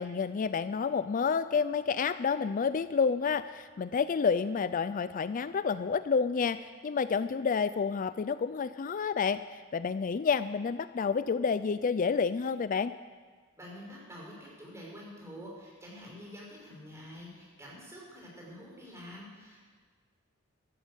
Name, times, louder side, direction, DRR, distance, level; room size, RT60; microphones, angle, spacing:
voice 1, 0.0-12.9, left 5 dB, 40° left, 14 dB, 0.4 m, -29 dB
voice 2, 13.6-19.6, equal, 15° right, -4 dB, 5.3 m, -47 dB
13.5 x 12.5 x 8.1 m, 1.5 s
head